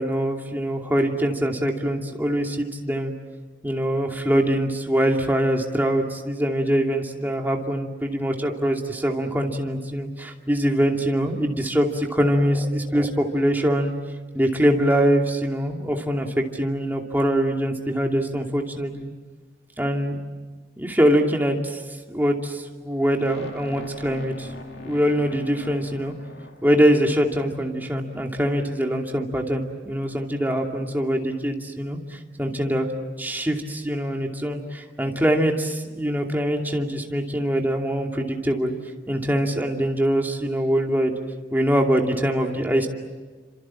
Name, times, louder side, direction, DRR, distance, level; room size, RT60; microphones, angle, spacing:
voice 1, 0.0-3.1 3.6-13.9 14.3-19.1 19.8-20.2 20.8-21.8 22.1-26.1 26.6-32.9 33.2-38.7 39.1-41.1 41.5-42.9, equal, 10° right, 1 dB, 2.6 m, -23 dB
sound 1, 23.1-27.2, left 2 dB, 65° left, 2.9 m, -41 dB
29.0 x 26.5 x 7.4 m, 1.4 s
head